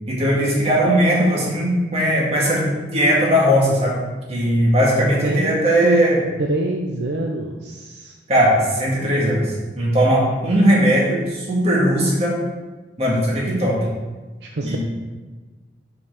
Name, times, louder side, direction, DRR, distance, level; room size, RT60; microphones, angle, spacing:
voice 1, 0.1-4.0 4.3-6.2 8.3-12.4 13.0-13.8 14.6-14.8, equal, 35° right, -4 dB, 2.0 m, -18 dB
voice 2, 5.2-6.0 6.4-8.1 14.4-14.8, right 2 dB, 60° right, 1 dB, 0.6 m, -25 dB
5.9 x 5.0 x 6.0 m, 1.3 s
head